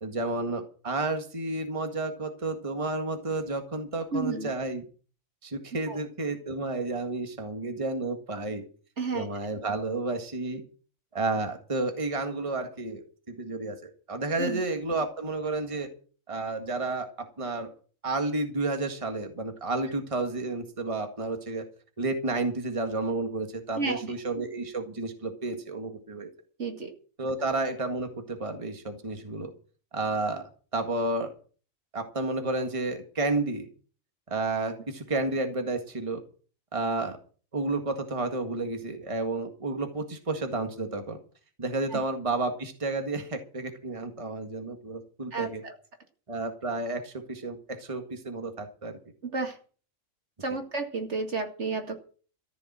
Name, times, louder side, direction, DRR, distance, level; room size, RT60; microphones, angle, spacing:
voice 1, 0.0-4.8 5.4-8.6 9.1-10.6 11.1-15.9 16.3-17.7 18.0-21.6 22.0-26.3 27.2-29.5 29.9-30.4 30.7-31.3 31.9-33.7 34.3-36.2 36.7-37.2 37.5-41.2 41.6-45.6 46.3-49.0 50.5-50.6, right 2 dB, 25° right, 5 dB, 1.8 m, -31 dB
voice 2, 4.1-4.5 5.9-6.0 9.0-9.3 14.4-14.6 23.7-24.1 26.6-26.9 41.9-42.0 45.3-45.8 49.2-49.6 50.4-52.0, right 4 dB, 55° right, 5 dB, 2.3 m, -31 dB
14.0 x 7.1 x 8.8 m, 0.40 s
omnidirectional pair, 1.4 m